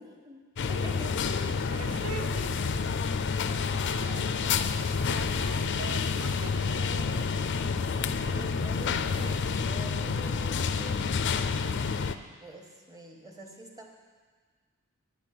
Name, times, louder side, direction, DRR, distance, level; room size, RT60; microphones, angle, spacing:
voice 1, 0.0-1.6 7.7-11.7 12.2-13.9, equal, 15° right, 1 dB, 1.2 m, -46 dB
sound 1, 0.6-12.1, left 5 dB, 55° left, 0.4 m, -29 dB
voice 2, 1.7-2.9 3.8-4.2 5.0-7.8, right 4 dB, 75° right, 6 dB, 0.8 m, -42 dB
9.5 x 6.1 x 8.5 m, 1.5 s
head